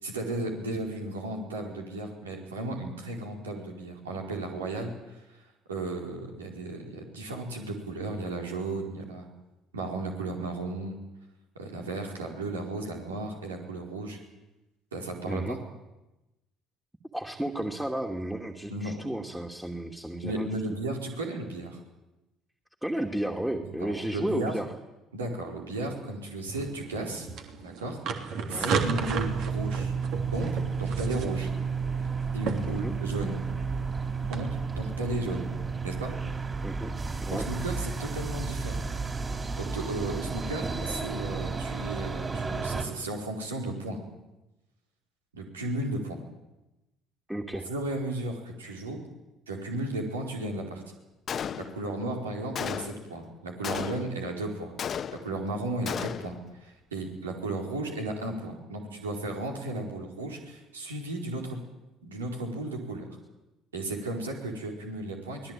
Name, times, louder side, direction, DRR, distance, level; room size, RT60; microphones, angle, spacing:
voice 1, 0.0-5.2 5.7-9.3 9.7-11.0 11.5-14.2 14.9-15.6 18.7-18.9 20.2-21.8 23.6-24.5 25.1-27.3 27.6-29.9 30.3-31.5 32.3-33.4 34.3-35.5 35.8-36.1 37.3-38.8 39.6-44.0 45.3-46.2 47.7-49.0 49.5-50.8 51.5-54.7 55.1-61.6 62.0-63.1 63.7-65.5, right 2 dB, 85° right, 1 dB, 4.5 m, -34 dB
voice 2, 15.3-15.6 17.1-20.6 22.8-24.7 28.5-28.8 32.7-32.9 36.6-36.9 37.2-37.5 47.3-47.7, right 1 dB, 5° right, 3 dB, 2.7 m, -33 dB
sound 1, 26.5-34.4, right 5 dB, 60° right, 3.2 m, -35 dB
sound 2, 28.9-42.8, right 5 dB, 30° right, 4.6 m, -32 dB
Gunshot gunfire, 51.3-52.0 52.6-53.1 53.6-54.3 54.8-55.5 55.9-56.4, left 8 dB, 45° left, 1.1 m, -34 dB
24.5 x 19.0 x 9.2 m, 1.0 s
figure-of-eight pair, 55°, 0 cm